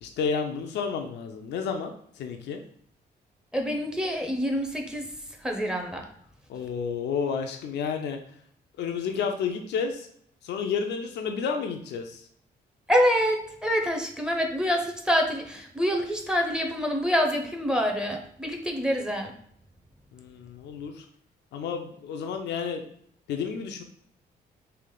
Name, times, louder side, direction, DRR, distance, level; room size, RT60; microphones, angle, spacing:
voice 1, 0.0-2.6 6.5-8.2 8.8-10.1 10.4-12.2 20.1-21.0 21.5-22.9 23.3-23.8, left 6 dB, 80° left, 5 dB, 0.5 m, -31 dB
voice 2, 3.5-5.1 5.4-6.0 12.9-19.3, equal, 5° right, 3 dB, 0.6 m, -26 dB
3.3 x 2.5 x 3.7 m, 0.65 s
cardioid pair, 95°, 17 cm